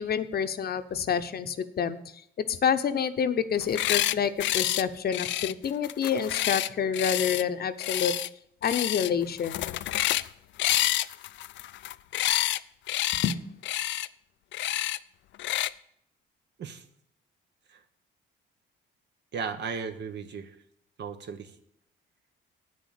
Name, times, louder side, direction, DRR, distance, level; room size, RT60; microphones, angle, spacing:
voice 1, 0.0-2.0 2.4-8.1 8.6-9.7 13.2-13.4, left 7 dB, 50° left, 10 dB, 0.8 m, -28 dB
sound 1, 3.6-4.2 4.4-4.8 5.1-7.4 7.8-8.3 8.6-9.1 9.4-10.3 10.6-12.6 12.9-13.3 13.6-14.1 14.5-15.0 15.4-15.7, left 14 dB, 70° left, 0.4 m, -28 dB
voice 2, 19.3-20.6 21.0-21.5, right 5 dB, 60° right, 9 dB, 1.1 m, -35 dB
8.9 x 6.5 x 8.4 m, 0.71 s
cardioid pair, 90°, 20 cm